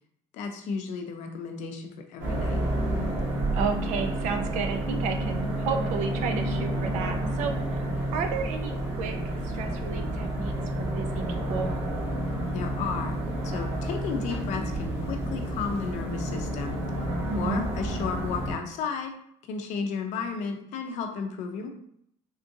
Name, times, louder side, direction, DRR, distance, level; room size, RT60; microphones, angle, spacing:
voice 1, 0.3-2.6 12.5-13.2 13.4-19.1 19.4-21.7, left 5 dB, 65° left, 4 dB, 0.5 m, -33 dB
sound 1, 2.2-18.5, right 1 dB, 50° right, 1.3 m, -30 dB
voice 2, 3.5-9.2 9.4-11.7 17.3-17.6, right 5 dB, 70° right, 6 dB, 0.5 m, -32 dB
3.7 x 2.5 x 2.6 m, 0.70 s
cardioid pair, 150°, 13 cm